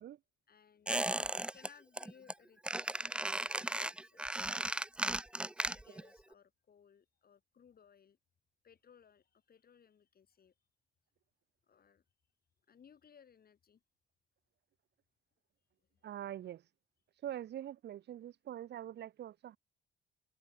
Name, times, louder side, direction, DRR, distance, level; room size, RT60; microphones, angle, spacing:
voice 1, 0.5-4.9 5.4-8.2 8.6-10.5 11.7-12.0 12.7-13.8, left 7 dB, 50° left, 3.1 m, -64 dB
Squeak, 0.9-1.7 2.0-2.3 2.6-6.1 6.3-6.4, right 1 dB, 5° right, 0.3 m, -36 dB
voice 2, 16.0-16.6 17.2-19.6, right 11 dB, 60° right, 0.7 m, -44 dB
cardioid pair, 90°, 20 cm